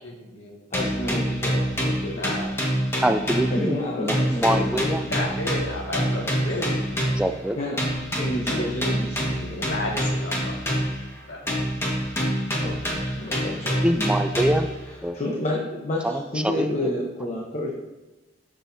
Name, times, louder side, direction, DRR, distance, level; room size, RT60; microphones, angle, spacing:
voice 1, 0.0-1.2 2.2-2.5 5.1-7.1 9.4-10.9 11.3-11.5, left 1 dB, 90° left, -2 dB, 2.0 m, -33 dB
voice 2, 0.7-2.3 3.5-5.0 7.6-7.8 8.1-9.6 12.6-13.9 14.4-14.5 15.1-17.7, left 1 dB, 35° left, -1 dB, 1.0 m, -30 dB
sound 1, 0.7-3.8 4.1-7.4 7.8-11.1 11.5-14.8, equal, 15° left, 1.6 m, -26 dB
voice 3, 3.0-5.0 7.2-7.6 13.8-14.7 15.0-15.2 16.0-16.9, right 1 dB, 5° right, 8 dB, 0.4 m, -24 dB
12.5 x 6.3 x 2.7 m, 1.1 s
head